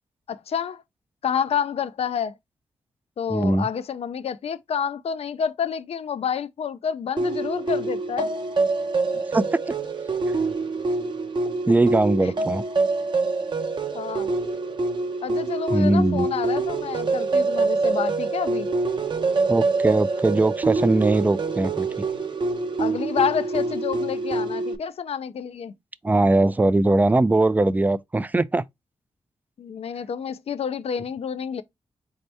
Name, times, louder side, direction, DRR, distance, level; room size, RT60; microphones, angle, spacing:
voice 1, 0.3-0.8 1.2-2.3 3.2-8.3 12.2-12.3 13.9-14.3 15.2-18.7 22.8-25.7 29.6-31.6, left 7 dB, 60° left, 0.4 m, -28 dB
voice 2, 3.3-3.7 9.3-9.6 11.7-12.6 15.7-16.3 19.5-22.1 26.0-28.6, right 2 dB, 15° right, 0.3 m, -20 dB
sound 1, 7.2-24.8, right 3 dB, 40° right, 0.7 m, -25 dB
4.2 x 2.8 x 3.3 m
cardioid pair, 85°, 12 cm